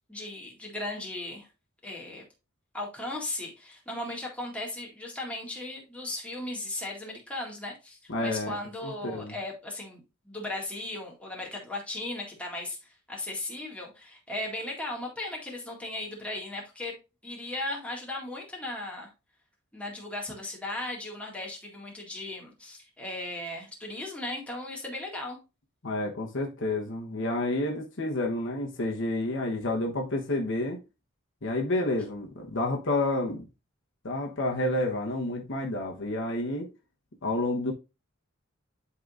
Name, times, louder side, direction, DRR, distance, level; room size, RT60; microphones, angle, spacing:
voice 1, 0.1-1.5 1.8-2.2 2.7-16.9 17.2-19.1 19.7-25.4, left 2 dB, 5° left, 1.9 m, -37 dB
voice 2, 8.1-8.6 8.8-9.4 25.8-30.8 31.4-33.4 34.0-36.7 37.2-37.7, left 2 dB, 60° left, 1.0 m, -29 dB
11.5 x 3.8 x 2.5 m
head